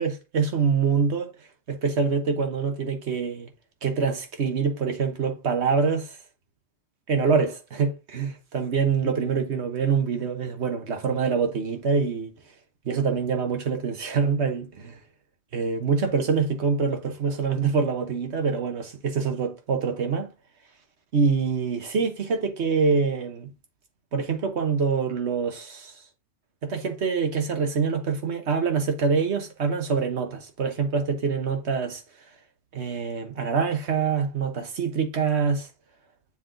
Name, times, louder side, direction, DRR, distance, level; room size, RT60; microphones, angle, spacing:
voice 1, 0.0-1.3 1.7-3.5 3.8-6.2 7.1-12.3 12.8-15.0 15.5-20.3 21.1-23.5 24.1-25.9 26.6-32.0 32.7-35.7, right 5 dB, 80° right, 1.4 m, -25 dB
7.1 x 3.9 x 3.8 m
omnidirectional pair, 1.1 m